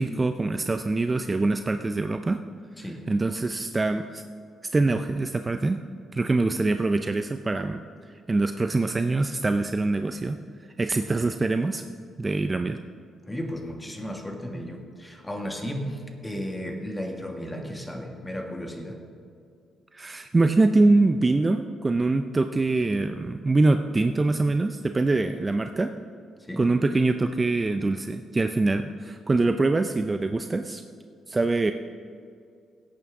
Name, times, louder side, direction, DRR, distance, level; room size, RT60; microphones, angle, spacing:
voice 1, 0.0-2.4 3.1-4.2 4.6-5.8 6.1-7.8 8.3-10.4 10.8-11.8 12.2-12.8 19.9-25.9 26.6-30.8 31.3-31.7, right 3 dB, 25° right, 8 dB, 0.5 m, -24 dB
voice 2, 13.2-19.0 26.5-26.7, equal, 10° left, 3 dB, 1.8 m, -34 dB
17.0 x 8.9 x 3.7 m, 2.4 s
cardioid pair, 90°, 0 cm